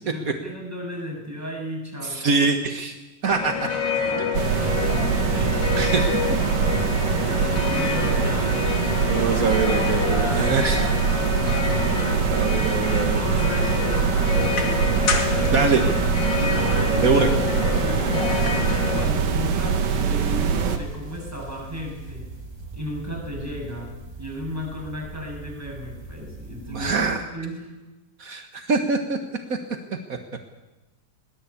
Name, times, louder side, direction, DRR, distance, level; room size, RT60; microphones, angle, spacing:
voice 1, 0.0-2.3 7.2-8.5 13.2-14.9 15.4-15.8 16.3-17.3 17.8-18.6 18.9-22.3 22.7-27.7, equal, 5° right, -2 dB, 7.6 m, -34 dB
voice 2, 2.0-3.0 3.2-3.5 5.3-6.1 7.8-7.9 8.7-8.8 9.0-11.0 12.2-13.2 15.5-15.8 17.0-17.3 26.7-27.2 28.2-29.2 29.5-29.6 30.1-30.2, right 4 dB, 55° right, 5 dB, 0.9 m, -24 dB
sound 1, 3.3-19.1, left 5 dB, 35° left, 2.8 m, -27 dB
sound 2, 4.3-20.8, right 6 dB, 80° right, 3.3 m, -23 dB
sound 3, 10.0-27.1, right 3 dB, 35° right, 3.8 m, -41 dB
22.0 x 18.5 x 8.5 m, 1.1 s
omnidirectional pair, 3.7 m